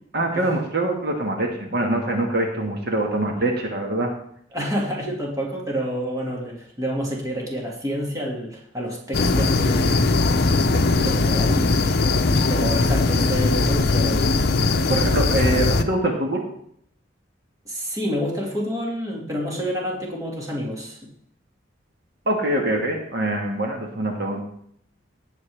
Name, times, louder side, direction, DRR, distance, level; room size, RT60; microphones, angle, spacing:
voice 1, 0.1-4.1 14.9-16.4 22.2-24.4, right 1 dB, 60° right, 2 dB, 1.6 m, -24 dB
voice 2, 4.5-10.0 10.7-14.3 17.7-21.0, equal, 20° right, -2 dB, 2.0 m, -29 dB
sound 1, 9.1-15.8, left 3 dB, 55° left, 0.7 m, -20 dB
17.0 x 6.9 x 3.4 m, 0.67 s
head